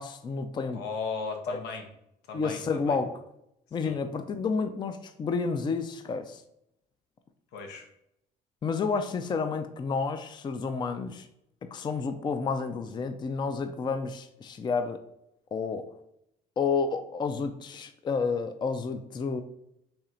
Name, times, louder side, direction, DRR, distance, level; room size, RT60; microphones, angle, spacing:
voice 1, 0.0-0.8 1.5-1.6 2.3-3.2 3.7-6.4 8.6-11.3 11.7-15.0 15.5-15.9 16.6-19.4, left 5 dB, 25° left, 9 dB, 0.4 m, -30 dB
voice 2, 0.7-1.8 2.3-3.0 3.8-4.0 7.5-7.9, left 5 dB, 85° left, 4 dB, 0.9 m, -36 dB
4.3 x 3.2 x 3.8 m, 0.79 s
cardioid pair, 110°, 17 cm